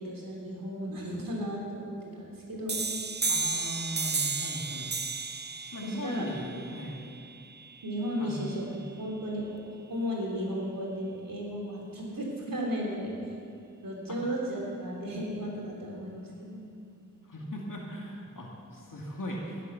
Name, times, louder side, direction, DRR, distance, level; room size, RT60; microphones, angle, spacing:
voice 1, 0.0-2.9 5.8-6.2 7.8-8.6 9.0-9.6 9.9-13.2 13.8-16.7, equal, 80° right, -3 dB, 3.4 m, -34 dB
sound 1, 2.7-8.1, right 4 dB, 30° right, 0.6 m, -33 dB
voice 2, 3.3-4.9 5.7-7.0 8.2-8.8 17.3-19.6, equal, 70° left, -2 dB, 2.1 m, -38 dB
17.5 x 7.5 x 6.9 m, 2.4 s
cardioid pair, 45°, 33 cm